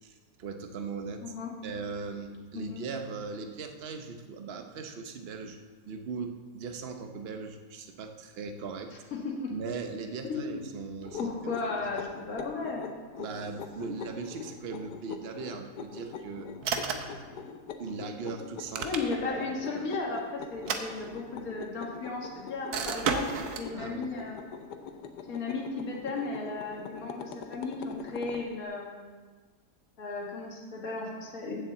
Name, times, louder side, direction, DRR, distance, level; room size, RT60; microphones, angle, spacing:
voice 1, 0.0-1.3 1.6-5.6 5.9-8.9 9.5-11.3 11.8-11.9 13.2-16.5 17.8-18.9 19.5-19.9 23.7-24.1, right 4 dB, 45° right, 6 dB, 0.9 m, -39 dB
voice 2, 9.1-9.5 10.2-10.6 11.2-12.8 18.8-23.3 23.6-24.5 25.3-29.1 30.0-31.7, left 3 dB, 60° left, -2 dB, 2.0 m, -35 dB
sound 1, 11.0-28.5, left 6 dB, 90° left, 1.3 m, -44 dB
sound 2, 16.6-17.2 18.5-19.4 20.5-21.5 22.7-23.7, right 6 dB, 75° right, 1.3 m, -32 dB
7.5 x 7.1 x 7.7 m, 1.4 s
omnidirectional pair, 1.7 m